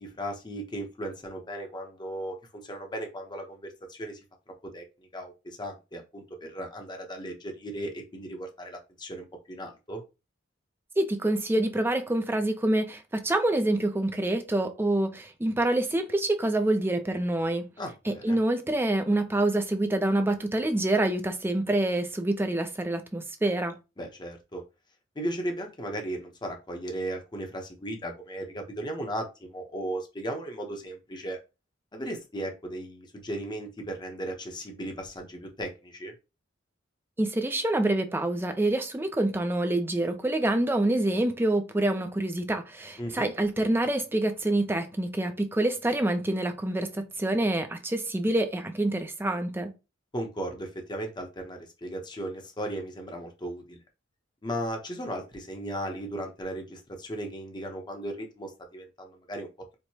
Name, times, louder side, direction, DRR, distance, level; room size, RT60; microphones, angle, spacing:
voice 1, 0.0-2.3 2.6-4.2 4.7-4.8 5.1-10.0 17.8-18.4 24.0-24.6 25.2-31.4 31.9-36.1 43.0-43.3 50.1-53.8 54.4-59.5, right 1 dB, 20° left, 0.7 m, -36 dB
voice 2, 11.0-17.7 18.1-23.8 37.2-49.7, right 1 dB, 10° right, 0.4 m, -26 dB
4.5 x 2.1 x 2.7 m
head